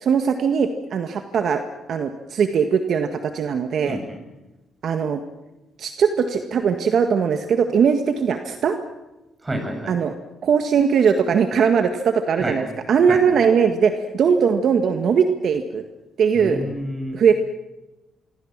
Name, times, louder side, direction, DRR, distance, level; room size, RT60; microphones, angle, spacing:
voice 1, 0.0-1.6 1.9-4.0 4.8-5.2 5.8-8.8 9.9-10.1 10.4-15.8 16.2-16.6 17.1-17.4, right 6 dB, 60° right, 6 dB, 1.7 m, -20 dB
voice 2, 3.9-4.2 9.4-9.9 12.4-12.6 13.1-13.2 16.3-17.2, right 1 dB, 20° right, 6 dB, 7.4 m, -29 dB
26.5 x 23.5 x 7.5 m, 1.0 s
cardioid pair, 90°, 0 cm